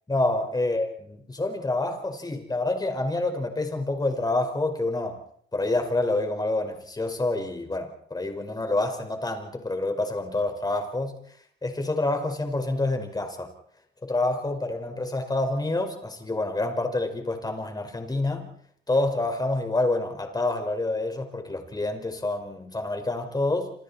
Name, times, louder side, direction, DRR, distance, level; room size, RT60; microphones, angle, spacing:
voice 1, 0.1-5.2 5.5-11.2 11.6-13.5 14.0-18.5 18.9-23.7, left 2 dB, 20° left, 5 dB, 5.4 m, -27 dB
28.0 x 27.5 x 4.4 m, 0.64 s
cardioid pair, 90°, 20 cm